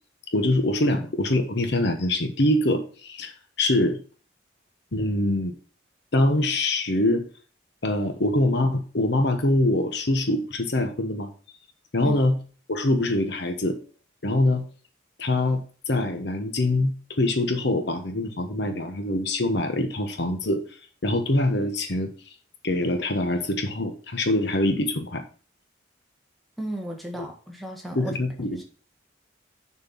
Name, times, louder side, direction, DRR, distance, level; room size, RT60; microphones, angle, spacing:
voice 1, 0.3-3.3 3.6-4.0 4.9-5.5 6.1-7.3 7.8-11.3 11.9-12.4 12.7-13.8 14.2-14.6 15.2-20.6 21.0-22.1 22.6-25.2 27.9-28.6, left 1 dB, 60° left, 6 dB, 1.1 m, -24 dB
voice 2, 26.6-28.2 28.5-28.6, right 1 dB, ahead, 0 dB, 1.6 m, -34 dB
6.9 x 4.5 x 5.6 m, 0.39 s
head